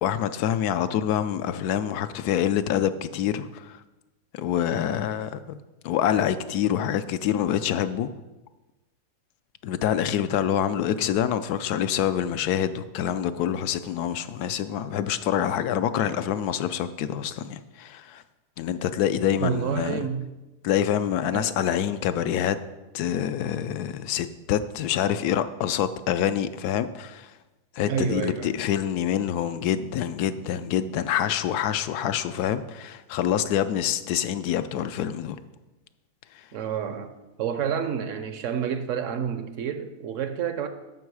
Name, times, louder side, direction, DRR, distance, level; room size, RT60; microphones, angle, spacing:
voice 1, 0.0-3.8 4.3-5.6 5.8-8.1 9.6-18.2 18.6-20.0 20.6-22.6 22.9-27.3 27.8-35.4, left 10 dB, 75° left, 1.1 m, -26 dB
voice 2, 19.2-20.3 21.3-21.6 27.8-28.6 36.5-37.1 37.4-40.7, right 7 dB, 65° right, 0.8 m, -29 dB
13.5 x 5.5 x 4.7 m
omnidirectional pair, 1.7 m